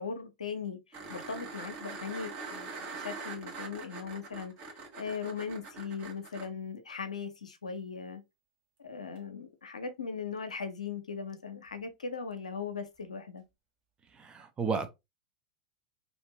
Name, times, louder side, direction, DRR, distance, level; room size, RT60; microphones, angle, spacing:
voice 1, 0.0-4.5 4.9-8.2 8.8-13.4, left 5 dB, 85° left, 0.5 m, -39 dB
sound 1, 0.9-6.5 9.2-9.3, right 4 dB, 45° right, 1.3 m, -43 dB
voice 2, 14.2-14.9, right 5 dB, 25° right, 0.6 m, -32 dB
2.8 x 2.5 x 2.8 m
figure-of-eight pair, 90°, 4 cm